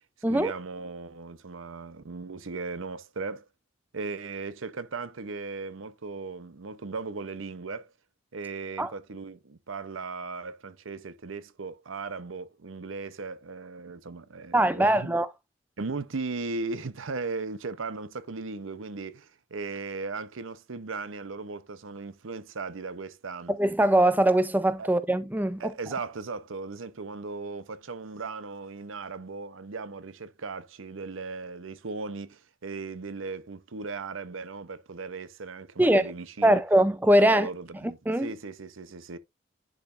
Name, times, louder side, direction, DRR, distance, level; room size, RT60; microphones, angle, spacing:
voice 1, 0.3-3.5 3.9-7.9 8.3-15.2 15.8-23.6 24.8-24.9 25.6-36.6 37.2-39.2, right 4 dB, 90° right, 0.7 m, -37 dB
voice 2, 14.5-15.3 23.5-25.7 35.8-36.0 36.4-37.5 38.1-38.3, right 1 dB, 10° right, 0.4 m, -22 dB
10.5 x 5.0 x 2.5 m
head